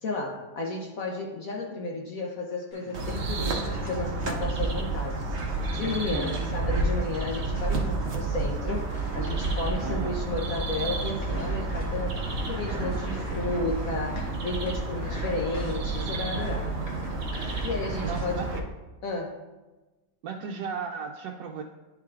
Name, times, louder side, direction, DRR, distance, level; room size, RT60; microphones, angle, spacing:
voice 1, 0.0-5.4 5.7-12.1 12.5-16.7 17.6-18.6 19.0-19.3, left 3 dB, 60° left, -1 dB, 1.0 m, -33 dB
sound 1, 2.7-18.2, equal, 45° left, 1.5 m, -44 dB
sound 2, 2.9-18.6, right 3 dB, 50° right, 0.9 m, -30 dB
voice 2, 6.1-6.5 9.8-10.2 18.0-18.5 20.2-21.6, right 6 dB, 85° right, 0 dB, 1.2 m, -35 dB
11.0 x 4.7 x 2.4 m, 1.2 s
omnidirectional pair, 1.9 m